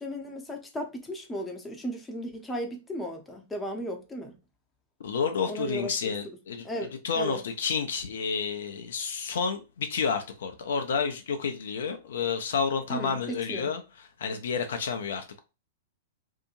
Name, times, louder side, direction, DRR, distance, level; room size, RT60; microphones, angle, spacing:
voice 1, 0.0-4.3 5.5-6.1 6.6-7.4 12.9-13.7, equal, 10° left, 0.7 m, -35 dB
voice 2, 5.0-6.7 7.0-13.8 14.2-15.4, left 6 dB, 65° left, 0.5 m, -30 dB
2.7 x 2.6 x 2.5 m
figure-of-eight pair, 100°, 0 cm